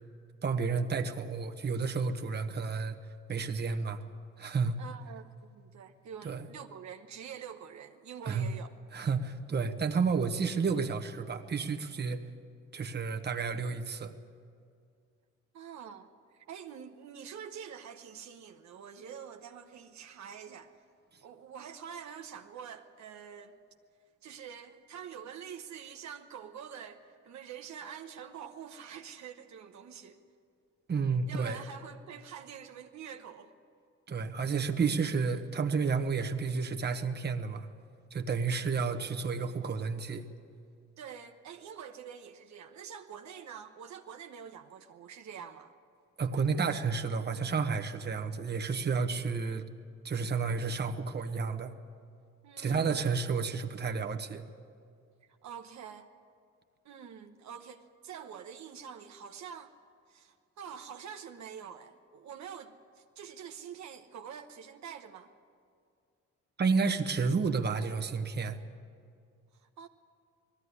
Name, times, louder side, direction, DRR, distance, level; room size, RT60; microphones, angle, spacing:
voice 1, 0.4-3.0 3.3-4.0 4.4-4.8 6.2-6.4 8.2-8.5 8.9-12.2 12.7-14.1 30.9-31.6 34.1-37.7 38.1-40.3 46.2-49.6 50.0-51.7 52.6-54.4 66.6-68.6, right 5 dB, 35° right, 4 dB, 1.3 m, -31 dB
voice 2, 4.8-8.7 15.5-20.7 21.2-23.6 24.2-30.2 31.1-33.5 41.0-45.7 52.4-53.0 55.4-56.1 56.8-59.7 60.1-65.3 69.6-69.9, right 7 dB, 70° right, 5 dB, 1.1 m, -46 dB
19.0 x 14.5 x 9.8 m, 2.3 s
cardioid pair, 90°, 30 cm